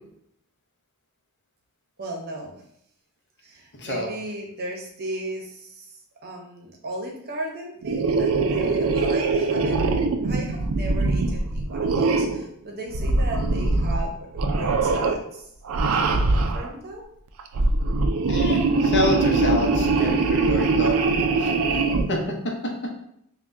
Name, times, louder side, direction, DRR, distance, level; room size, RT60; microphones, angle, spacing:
voice 1, 2.0-2.5 3.4-10.0 10.2-15.5 15.9-17.0, right 1 dB, 45° right, 0 dB, 0.8 m, -36 dB
sound 1, 7.8-12.5 12.9-14.1 14.3-15.2 15.6-16.7 17.4-22.1, right 3 dB, 70° right, 0.4 m, -22 dB
voice 2, 18.3-21.0 21.4-21.5 22.1-22.2, left 1 dB, 50° left, 0 dB, 0.8 m, -26 dB
5.7 x 2.2 x 2.6 m, 0.73 s
head